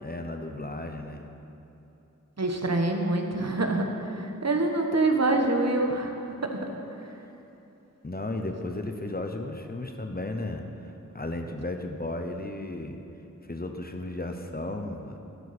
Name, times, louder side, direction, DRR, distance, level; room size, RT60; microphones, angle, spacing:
voice 1, 0.0-1.2 8.0-10.6 11.1-13.0 13.5-15.2, left 2 dB, 30° left, 4 dB, 0.8 m, -34 dB
voice 2, 2.4-6.7, right 2 dB, 55° right, 3 dB, 1.2 m, -26 dB
11.5 x 11.5 x 4.3 m, 2.9 s
wide cardioid pair, 55°, 32 cm